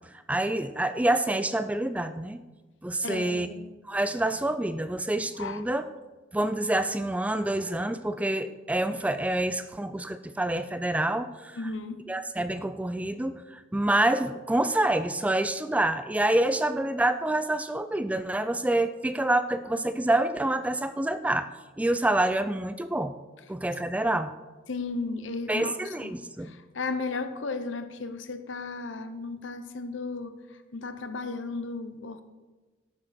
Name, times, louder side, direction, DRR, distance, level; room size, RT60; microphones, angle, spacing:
voice 1, 0.3-2.4 2.8-3.5 3.8-5.8 6.3-11.6 12.1-21.5 21.8-23.1 23.5-24.3 25.5-26.5, right 1 dB, 5° right, 11 dB, 0.3 m, -27 dB
voice 2, 3.0-3.7 5.3-5.6 11.5-12.0 24.7-26.1 26.4-32.2, left 3 dB, 75° left, 9 dB, 0.9 m, -35 dB
11.5 x 8.8 x 4.3 m, 1.2 s
head